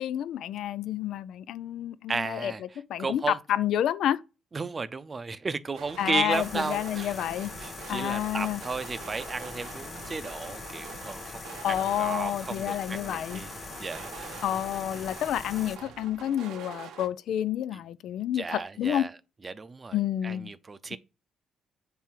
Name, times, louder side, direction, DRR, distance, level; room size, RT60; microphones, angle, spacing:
voice 1, 0.0-2.5 2.9-4.2 6.0-7.5 7.9-8.6 11.6-13.4 14.4-19.1 19.9-20.5 20.9-21.0, left 11 dB, 70° left, 0.3 m, -29 dB
voice 2, 2.1-3.4 4.5-7.2 7.6-11.4 11.7-13.5 13.8-14.5 17.7-17.8 18.3-19.1 19.4-20.0 20.2-21.0, right 4 dB, 35° right, 0.6 m, -34 dB
sound 1, 5.7-17.1, right 8 dB, 75° right, 0.7 m, -45 dB
sound 2, 6.3-15.8, left 4 dB, 45° left, 0.7 m, -42 dB
7.4 x 3.4 x 4.5 m
hypercardioid pair, 50°, 0 cm